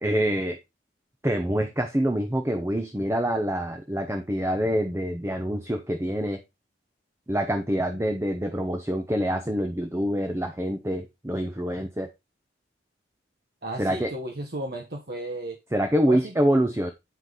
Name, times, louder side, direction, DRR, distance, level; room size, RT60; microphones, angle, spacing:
voice 1, 0.0-0.6 1.2-6.4 7.3-12.1 13.8-14.1 15.7-16.9, equal, 15° right, 5 dB, 0.8 m, -26 dB
voice 2, 13.6-15.6 16.1-16.3, right 1 dB, 60° right, 2 dB, 1.2 m, -34 dB
9.3 x 5.0 x 4.0 m, 0.22 s
head